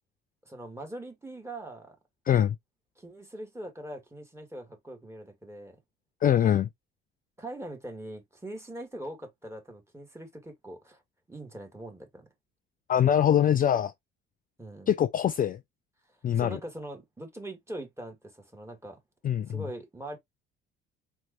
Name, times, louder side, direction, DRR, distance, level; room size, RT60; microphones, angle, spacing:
voice 1, 0.4-2.0 3.0-5.8 7.4-11.0 11.3-12.2 14.6-14.9 16.3-19.0 19.5-20.2, right 1 dB, 10° right, 2.1 m, -42 dB
voice 2, 2.3-2.6 6.2-6.7 12.9-13.9 14.9-15.6 16.2-16.6 19.2-19.6, left 9 dB, 30° left, 0.4 m, -23 dB
4.4 x 4.1 x 2.9 m
figure-of-eight pair, 55°, 30 cm